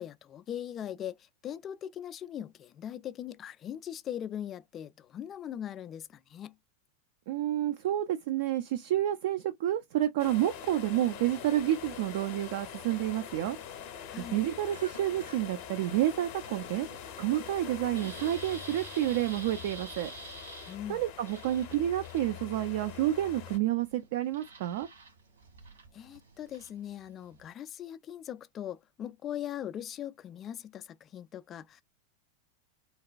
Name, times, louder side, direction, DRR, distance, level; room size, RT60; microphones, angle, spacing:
voice 1, 0.0-6.5 14.1-14.4 20.7-21.0 25.9-31.8, left 10 dB, 30° left, 0.3 m, -40 dB
voice 2, 7.3-13.6 14.3-16.9 17.2-20.1 20.9-24.9, right 13 dB, 50° right, 0.4 m, -29 dB
sound 1, 10.2-23.6, left 9 dB, 45° left, 0.7 m, -44 dB
Cough, 14.7-15.5 15.8-16.0 16.6-17.1 17.5-18.2, equal, 90° right, 1.5 m, -51 dB
sound 2, 15.6-27.5, right 3 dB, 70° right, 1.8 m, -51 dB
4.0 x 2.1 x 2.4 m
figure-of-eight pair, 90°, 0 cm